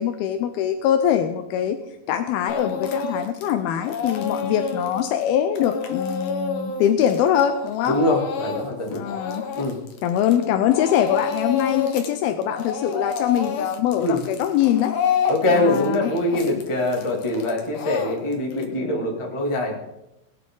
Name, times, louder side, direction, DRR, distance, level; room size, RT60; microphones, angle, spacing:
voice 1, 0.0-1.8 2.1-8.0 8.9-9.6 10.0-15.0 15.5-16.1, left 10 dB, 80° left, 7 dB, 2.6 m, -23 dB
Speech / Crying sobbing, 2.5-3.5 3.8-10.5 10.7-12.1 12.4-18.6, left 6 dB, 65° left, 2.8 m, -29 dB
voice 2, 7.9-9.1 9.5-9.8 14.0-14.2 15.3-19.7, left 1 dB, 10° left, -2 dB, 1.8 m, -23 dB
21.5 x 9.3 x 3.9 m, 0.92 s
omnidirectional pair, 4.4 m